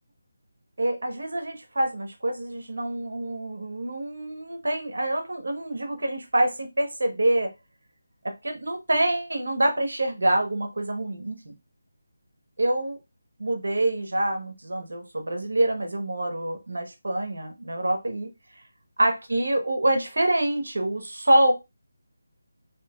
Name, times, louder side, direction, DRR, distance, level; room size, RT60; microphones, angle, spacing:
voice 1, 0.8-7.5 8.2-11.5 12.6-13.0 13.4-18.3 19.0-21.5, right 1 dB, 80° right, 4 dB, 1.0 m, -26 dB
3.2 x 2.9 x 2.3 m, 0.24 s
figure-of-eight pair, 170°, 0 cm